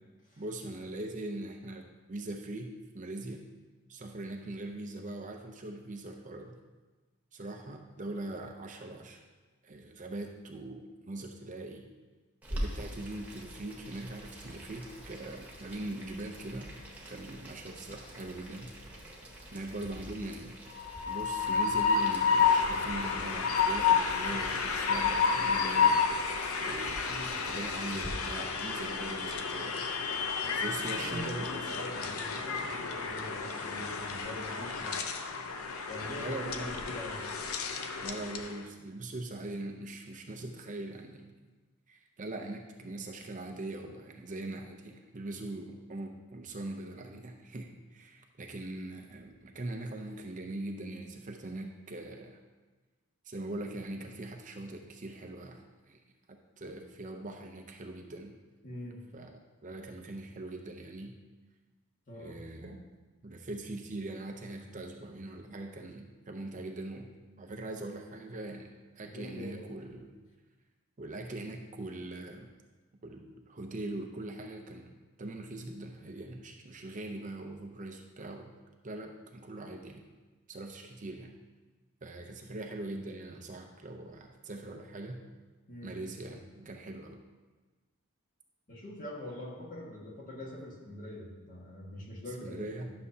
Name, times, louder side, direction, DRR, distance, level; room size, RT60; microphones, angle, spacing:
voice 1, 0.4-3.4 3.9-6.6 7.3-9.2 9.6-11.9 12.5-16.7 17.1-18.7 19.5-20.6 21.1-26.0 26.6-27.0 27.5-29.8 30.6-31.5 36.2-36.7 38.0-41.3 41.9-52.4 53.3-56.0 56.3-58.3 59.1-61.1 62.2-62.9 63.2-70.1 71.0-72.5 73.0-78.5 78.8-80.0 80.5-81.3 82.0-85.2 85.8-87.2 92.4-92.9, right 2 dB, 35° right, 3 dB, 0.7 m, -41 dB
Boiling, 12.4-28.1, equal, 5° right, 1.5 m, -45 dB
Train, 20.8-38.6, left 5 dB, 70° left, 0.7 m, -31 dB
voice 2, 27.0-27.4 30.4-35.0 35.9-37.3 58.6-59.0 62.1-62.3 69.0-69.6 85.7-86.0 88.7-92.9, left 1 dB, 40° left, -2 dB, 1.7 m, -44 dB
11.5 x 6.7 x 2.8 m, 1.3 s
head